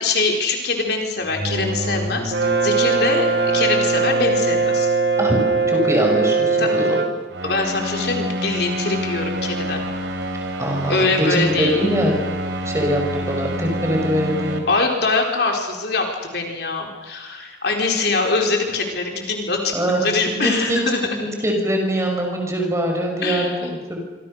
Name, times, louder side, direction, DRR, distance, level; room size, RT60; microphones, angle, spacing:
voice 1, 0.0-3.3 3.5-4.9 6.6-6.7 7.4-9.8 10.9-11.7 14.7-21.2 23.2-23.7, left 3 dB, 60° left, 2 dB, 4.5 m, -23 dB
sound 1, 1.2-6.8, left 1 dB, 35° right, 3.1 m, -30 dB
Brass instrument, 2.3-7.2, right 4 dB, 55° right, 1.9 m, -20 dB
voice 2, 5.7-7.0 10.6-12.1 12.7-14.7 19.7-20.8 21.1-24.0, equal, 15° right, 1 dB, 5.4 m, -22 dB
sound 2, 7.3-14.6, equal, 80° right, 3.8 m, -27 dB
26.5 x 26.0 x 6.6 m, 1.3 s
head